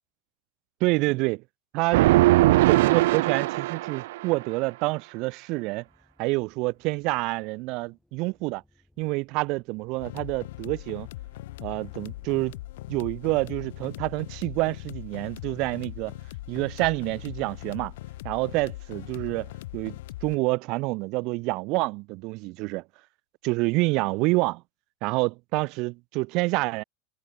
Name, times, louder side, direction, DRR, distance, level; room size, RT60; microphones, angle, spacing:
voice 1, 0.8-1.4 1.7-2.0 2.7-5.8 6.2-8.6 9.0-11.1 11.6-12.6 12.9-16.1 16.5-17.9 18.2-22.8 23.4-24.6 25.0-26.8, right 24 dB, 40° right, 1.4 m, -27 dB
sound 1, 1.9-4.3, right 18 dB, 60° right, 0.6 m, -20 dB
sound 2, 5.8-18.6, left 1 dB, ahead, 6.9 m, -62 dB
sound 3, 10.0-20.4, left 17 dB, 65° left, 3.3 m, -40 dB
supercardioid pair, 175°, 0 cm